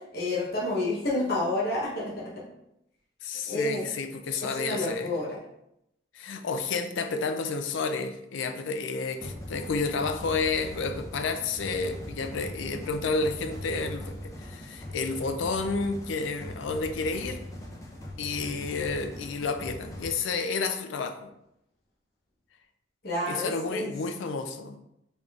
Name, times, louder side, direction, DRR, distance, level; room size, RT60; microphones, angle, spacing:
voice 1, 0.1-2.2 3.5-3.8 4.6-5.4 23.0-23.9, left 1 dB, 50° left, -5 dB, 0.9 m, -29 dB
voice 2, 3.2-5.2 6.1-17.4 18.2-21.3 23.2-24.8, left 4 dB, 75° left, 8 dB, 0.4 m, -31 dB
sound 1, 9.2-20.1, left 1 dB, 15° left, 0.5 m, -40 dB
3.9 x 3.5 x 2.4 m, 0.81 s
head